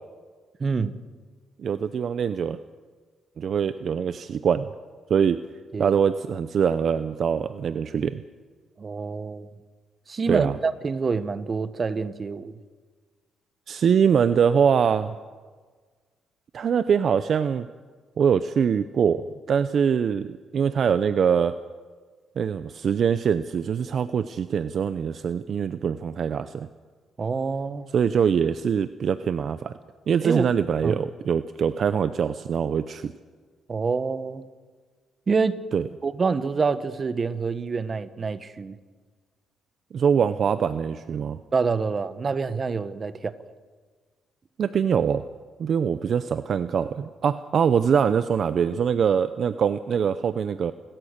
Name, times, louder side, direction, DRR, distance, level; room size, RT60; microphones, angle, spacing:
voice 1, 0.6-0.9 5.7-5.9 8.8-9.5 10.1-12.5 27.2-27.9 30.2-30.5 30.8-31.0 33.7-34.4 35.3-35.6 36.0-38.8 41.5-43.3, right 4 dB, 35° right, 1.2 m, -26 dB
voice 2, 1.6-2.6 3.4-4.7 5.1-5.4 5.8-8.2 10.3-10.5 13.7-15.1 16.5-17.7 18.2-21.5 22.4-26.7 27.9-29.7 30.1-33.1 35.7-35.8 39.9-41.4 44.6-45.2 45.6-50.7, right 7 dB, 55° right, 0.7 m, -23 dB
29.0 x 13.5 x 6.7 m
cardioid pair, 90°, 0 cm